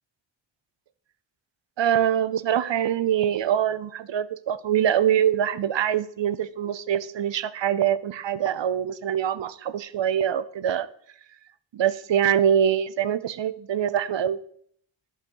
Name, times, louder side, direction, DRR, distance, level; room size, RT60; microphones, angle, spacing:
voice 1, 1.8-10.9 11.7-14.4, right 9 dB, 70° right, 15 dB, 0.7 m, -24 dB
11.5 x 5.9 x 4.6 m, 0.64 s
wide cardioid pair, 105°, 45 cm